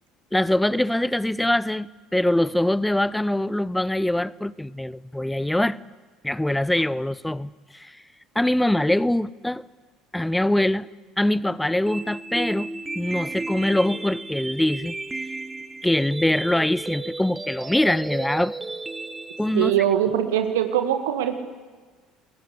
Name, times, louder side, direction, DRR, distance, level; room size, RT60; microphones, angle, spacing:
voice 1, 0.3-5.8 6.2-7.9 8.3-9.6 10.1-10.9 11.2-12.7 12.9-15.0 15.8-18.5 19.4-19.7, left 1 dB, 5° left, 0.7 m, -23 dB
sound 1, 11.9-19.9, right 2 dB, 15° right, 1.5 m, -34 dB
voice 2, 19.5-21.3, right 10 dB, 70° right, 1.8 m, -22 dB
30.0 x 21.5 x 8.3 m
figure-of-eight pair, 60°, 0 cm